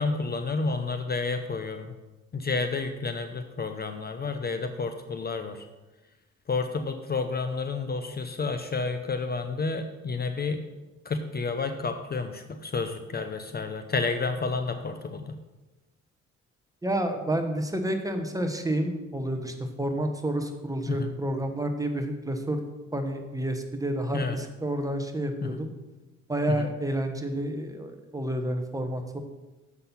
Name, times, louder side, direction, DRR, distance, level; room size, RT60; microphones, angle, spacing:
voice 1, 0.0-1.9 2.3-5.7 6.5-10.6 11.0-15.4 20.9-21.1 24.1-24.4 25.4-25.6 26.5-26.7, left 4 dB, 30° left, 8 dB, 0.7 m, -30 dB
voice 2, 16.8-22.6 22.9-25.7 26.3-29.2, right 1 dB, 10° right, 6 dB, 1.0 m, -30 dB
7.6 x 6.0 x 5.7 m, 1.1 s
cardioid pair, 90°, 30 cm